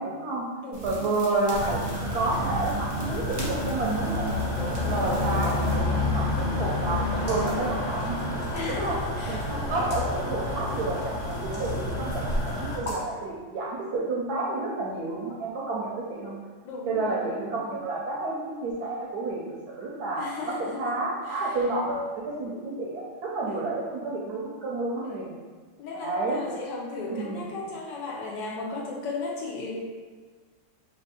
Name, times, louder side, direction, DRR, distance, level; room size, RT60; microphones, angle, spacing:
voice 1, 0.0-0.4 0.8-1.8 2.1-4.3 4.8-8.2 8.7-9.0 9.3-11.1 11.4-16.4 16.9-25.3 25.9-26.4 27.1-27.4, right 2 dB, 70° right, -4 dB, 0.9 m, -30 dB
voice 2, 0.6-1.2 4.6-5.1 8.5-9.9 16.6-17.7 20.2-21.0 21.3-21.6 23.4-23.6 25.0-25.2 25.8-29.7, left 3 dB, 75° left, -2 dB, 1.2 m, -36 dB
sound 1, 0.7-5.8, right 4 dB, 40° right, 0.6 m, -37 dB
sound 2, 1.5-12.8, left 2 dB, 55° left, 0.8 m, -29 dB
sound 3, 7.1-7.5 8.4-9.0 9.7-10.1 11.3-11.8 12.8-13.1, left 1 dB, 35° left, 1.3 m, -38 dB
3.4 x 2.7 x 4.1 m, 1.5 s
omnidirectional pair, 2.1 m